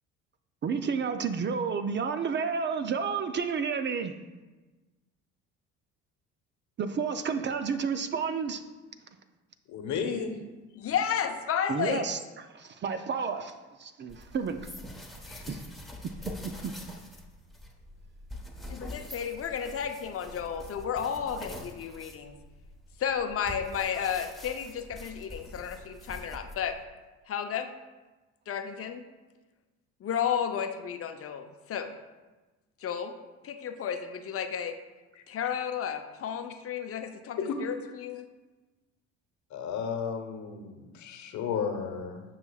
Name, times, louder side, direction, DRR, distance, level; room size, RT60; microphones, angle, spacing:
voice 1, 0.6-4.2 6.8-8.6 11.7-12.2 12.5-14.7 15.5-15.6 16.2-16.7, right 6 dB, 30° right, 9 dB, 0.5 m, -31 dB
voice 2, 9.7-10.3 15.3-15.5 35.2-35.3 37.4-37.6 37.8-37.9 39.5-42.2, left 6 dB, 55° left, 6 dB, 1.0 m, -33 dB
voice 3, 10.8-12.1 18.7-22.4 23.0-26.8 27.3-27.7 28.5-29.1 30.0-31.9 32.8-33.1 33.4-34.8 35.3-37.7 38.0-38.3, left 8 dB, 40° left, 6 dB, 0.7 m, -32 dB
sound 1, 14.1-26.8, left 1 dB, ahead, 1.1 m, -45 dB
9.4 x 5.8 x 2.4 m, 1.2 s
hypercardioid pair, 60°, 34 cm